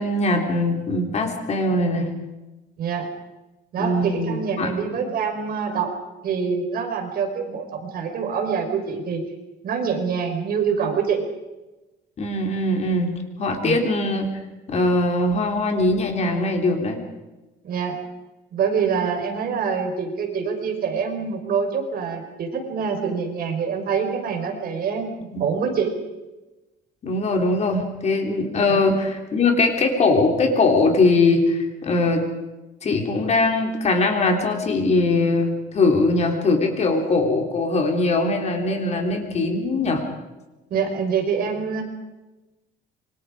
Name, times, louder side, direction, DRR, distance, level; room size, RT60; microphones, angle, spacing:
voice 1, 0.0-2.1 3.8-4.8 12.2-13.1 13.4-14.3 14.7-17.0 25.3-25.4 27.0-32.2 32.8-40.0, left 2 dB, 35° left, 3 dB, 3.6 m, -21 dB
voice 2, 2.8-3.1 3.7-5.9 6.2-9.2 9.6-11.2 13.6-13.8 17.6-18.0 18.5-25.1 25.4-25.9 28.7-28.9 40.7-41.8, right 6 dB, 50° right, 4 dB, 4.9 m, -25 dB
27.0 x 24.0 x 5.0 m, 1.1 s
cardioid pair, 165°, 19 cm